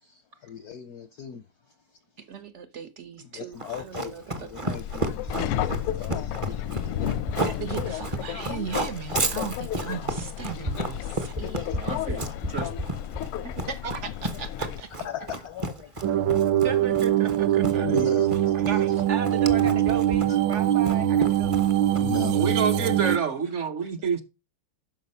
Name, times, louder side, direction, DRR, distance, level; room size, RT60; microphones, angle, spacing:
voice 1, 0.0-1.5 3.2-7.5 9.3-9.4 11.4-11.8 12.2-12.3 13.1-13.5 14.2-14.4 14.7-16.7 17.8-18.8 20.3-20.4 21.9-22.6, left 8 dB, 70° left, 0.9 m, -40 dB
voice 2, 2.2-4.5 7.4-12.0 13.4-14.9 16.6-18.2 18.5-21.5, right 6 dB, 85° right, 0.6 m, -36 dB
Run, 3.6-22.3, right 1 dB, 30° right, 0.5 m, -32 dB
Subway metro underground, 4.8-14.8, left 11 dB, 85° left, 1.6 m, -33 dB
voice 3, 11.7-12.2 12.5-12.7 13.8-14.0 22.3-24.2, right 6 dB, 50° right, 0.9 m, -28 dB
sound 1, 16.0-23.2, right 11 dB, 70° right, 1.3 m, -22 dB
12.0 x 5.1 x 5.5 m
omnidirectional pair, 2.4 m